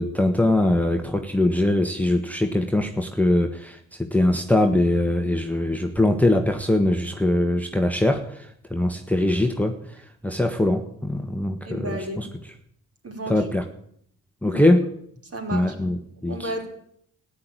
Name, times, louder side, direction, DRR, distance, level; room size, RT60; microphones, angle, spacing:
voice 1, 0.0-12.3 13.3-13.7 14.4-15.0 15.5-16.5, left 1 dB, 5° left, 5 dB, 1.4 m, -22 dB
voice 2, 11.6-12.2 13.0-13.5 14.4-14.7 15.2-15.8 16.3-16.7, right 1 dB, 40° right, 2 dB, 4.6 m, -32 dB
14.0 x 10.0 x 9.0 m, 0.70 s
supercardioid pair, 60°, 37 cm